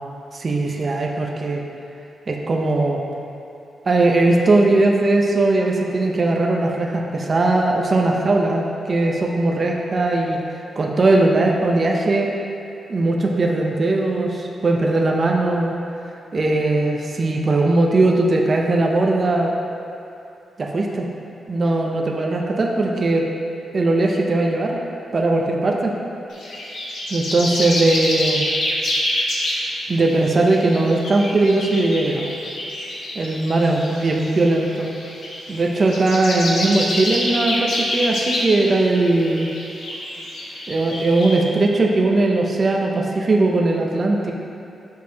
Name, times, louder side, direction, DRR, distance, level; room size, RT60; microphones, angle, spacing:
voice 1, 0.3-1.6 2.3-3.0 3.9-12.3 12.9-15.7 16.3-19.5 20.6-21.1 21.5-23.2 23.7-24.8 25.1-25.9 27.1-28.5 29.9-32.3 33.2-34.9 35.5-39.5 40.7-44.3, right 2 dB, 35° right, 0 dB, 0.5 m, -19 dB
sound 1, 26.3-41.4, left 1 dB, 80° left, 1.1 m, -27 dB
6.4 x 6.3 x 2.8 m, 2.7 s
wide cardioid pair, 140°, 0 cm